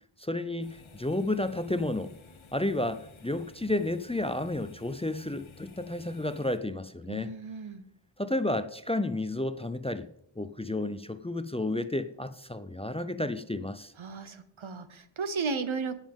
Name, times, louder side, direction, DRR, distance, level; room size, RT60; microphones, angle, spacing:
voice 1, 0.2-2.1 2.5-7.3 8.2-10.1 10.4-13.9, left 1 dB, 15° left, 0.5 m, -31 dB
sound 1, 0.6-6.6, left 4 dB, 80° left, 1.3 m, -53 dB
voice 2, 7.1-7.8 14.0-16.0, right 4 dB, 80° right, 1.0 m, -34 dB
18.0 x 7.3 x 3.6 m
wide cardioid pair, 70°, 47 cm